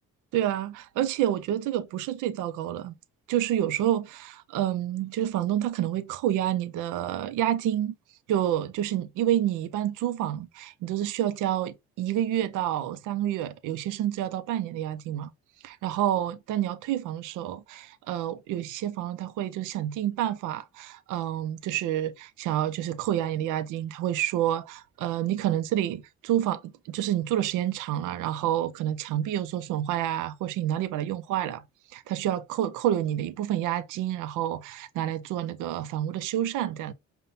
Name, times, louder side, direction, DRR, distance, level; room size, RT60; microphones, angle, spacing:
voice 1, 0.3-3.0 3.3-7.9 8.3-15.3 15.6-31.6 31.9-36.9, right 12 dB, 85° right, 0.5 m, -28 dB
5.3 x 2.1 x 2.7 m
cardioid pair, 90°, 30 cm